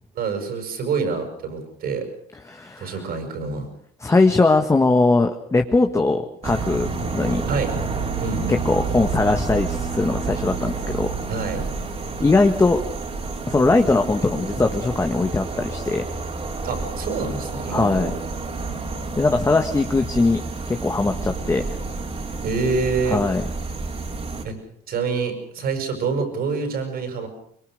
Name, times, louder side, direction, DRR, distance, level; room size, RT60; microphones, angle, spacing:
voice 1, 0.1-2.1 2.8-3.7 7.5-7.8 8.2-8.7 11.3-11.7 16.6-18.1 22.4-23.2 24.4-24.5 24.9-27.3, right 4 dB, 65° right, 7 dB, 7.1 m, -26 dB
voice 2, 2.5-2.9 4.0-6.9 7.1-7.5 8.5-11.2 12.2-12.8 13.5-16.0 17.7-18.1 19.2-20.4 20.7-21.8 23.1-23.4, left 3 dB, 15° left, 5 dB, 1.5 m, -20 dB
sound 1, 6.4-24.4, right 4 dB, 35° right, 4.2 m, -29 dB
24.5 x 22.5 x 6.6 m, 0.63 s
cardioid pair, 110°, 17 cm